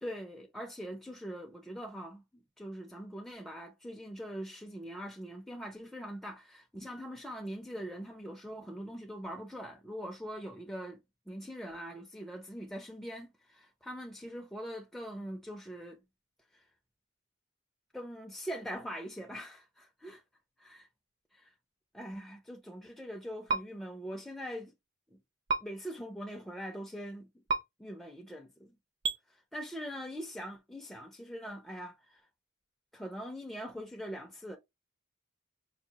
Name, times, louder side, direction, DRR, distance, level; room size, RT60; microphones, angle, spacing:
voice 1, 0.0-11.0 11.3-16.0 17.9-20.2 20.6-20.8 21.3-21.5 21.9-24.7 25.1-25.2 25.6-27.3 27.8-28.7 29.5-32.2 32.9-34.6, equal, ahead, 0.4 m, -42 dB
sound 1, 23.5-23.6 25.5-25.6 27.5-27.6 29.0-29.2, right 4 dB, 55° right, 0.5 m, -29 dB
4.7 x 2.3 x 2.8 m
head